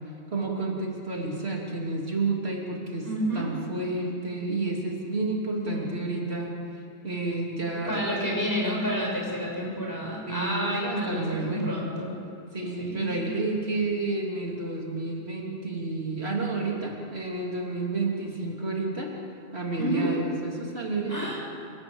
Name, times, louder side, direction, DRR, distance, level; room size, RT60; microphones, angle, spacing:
voice 1, 0.3-3.1 3.3-6.5 7.0-8.1 10.3-11.8 12.5-19.1 19.5-21.3, right 3 dB, 75° right, -1 dB, 3.5 m, -30 dB
voice 2, 3.0-3.5 5.6-5.9 7.9-12.1 12.8-13.3 19.8-20.1 21.1-21.4, equal, 15° left, -3 dB, 6.7 m, -30 dB
26.5 x 17.5 x 8.1 m, 2.4 s
omnidirectional pair, 1.1 m